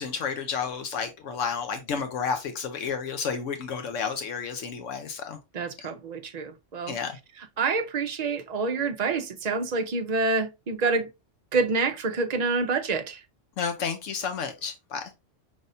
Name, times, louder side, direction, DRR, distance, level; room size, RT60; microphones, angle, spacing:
voice 1, 0.0-5.4 6.9-7.2 13.6-15.0, left 6 dB, 75° left, 1.0 m, -31 dB
voice 2, 5.5-7.0 7.4-11.1 11.5-13.2, right 4 dB, 45° right, 0.5 m, -27 dB
5.3 x 3.4 x 2.6 m
omnidirectional pair, 1.3 m